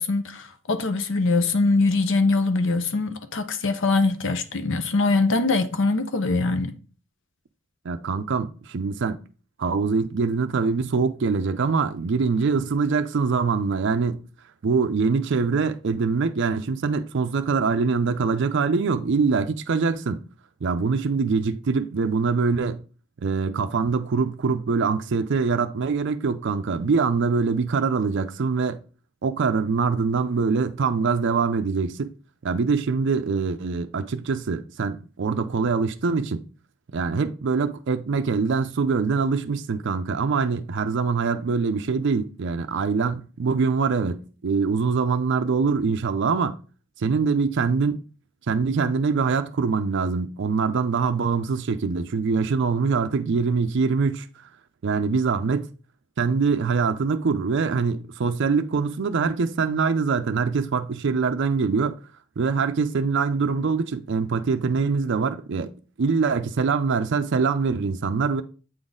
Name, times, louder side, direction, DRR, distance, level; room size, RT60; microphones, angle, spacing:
voice 1, 0.0-6.7, left 3 dB, 60° left, 0.7 m, -23 dB
voice 2, 7.8-9.2 9.6-14.2 14.6-20.2 20.6-22.8 23.2-28.8 29.2-32.1 32.4-36.4 36.9-46.5 47.0-48.0 48.5-54.5 54.8-55.7 56.2-62.0 62.4-65.7 66.0-68.4, right 5 dB, 55° right, 0.4 m, -24 dB
7.8 x 3.7 x 4.0 m
head